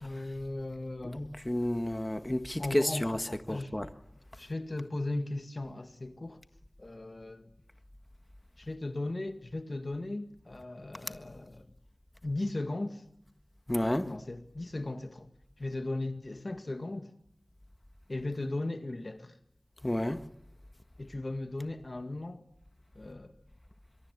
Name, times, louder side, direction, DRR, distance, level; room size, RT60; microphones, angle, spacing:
voice 1, 0.0-1.3 2.6-3.7 4.4-6.4 6.8-7.5 8.6-11.7 12.2-13.0 14.1-15.3 15.6-17.1 18.1-19.4 21.0-22.4 23.0-23.3, left 2 dB, 55° left, 1.9 m, -37 dB
voice 2, 1.1-3.2 3.5-3.9 13.7-14.1 19.8-20.2, left 1 dB, 25° left, 1.6 m, -30 dB
24.5 x 23.5 x 8.2 m
wide cardioid pair, 40°, 0 cm